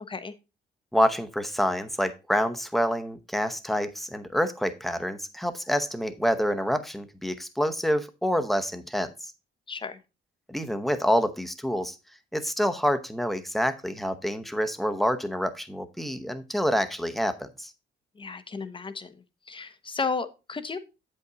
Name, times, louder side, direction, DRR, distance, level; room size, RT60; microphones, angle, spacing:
voice 1, 0.9-9.3 10.5-11.9 12.3-17.7, equal, ahead, 8 dB, 0.9 m, -27 dB
voice 2, 9.7-10.0 18.2-19.2 19.5-20.8, left 4 dB, 25° left, 11 dB, 0.9 m, -33 dB
7.9 x 5.5 x 3.9 m, 0.28 s
cardioid pair, 90°, 20 cm